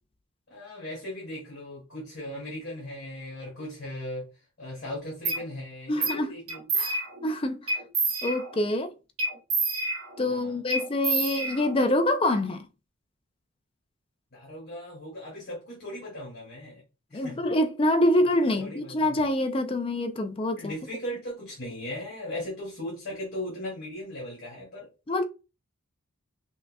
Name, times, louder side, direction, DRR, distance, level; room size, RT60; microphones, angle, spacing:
voice 1, 0.5-6.7 10.3-10.6 14.3-16.8 17.1-17.5 18.4-19.2 20.5-24.9, left 1 dB, 45° left, 2.1 m, -38 dB
sound 1, 5.3-5.4 6.0-6.2 6.5-7.3 7.7-8.7 9.2-10.3 10.7-11.9, right 3 dB, 70° right, 1.3 m, -29 dB
voice 2, 5.9-6.3 6.7-7.7 8.2-8.9 10.2-12.7 17.1-20.7 25.1-25.2, left 1 dB, 25° left, 0.4 m, -26 dB
5.5 x 2.7 x 2.2 m
head